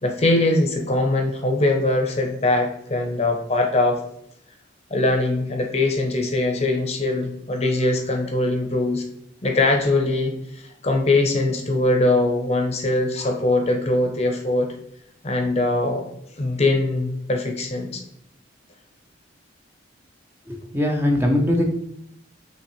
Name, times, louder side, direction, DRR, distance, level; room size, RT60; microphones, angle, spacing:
voice 1, 0.0-4.0 4.9-9.0 9.4-14.7 15.2-16.1 16.4-18.0, left 2 dB, 30° left, 3 dB, 0.7 m, -22 dB
voice 2, 20.5-21.7, left 1 dB, 10° right, 1 dB, 0.5 m, -21 dB
5.7 x 3.0 x 3.1 m, 0.74 s
head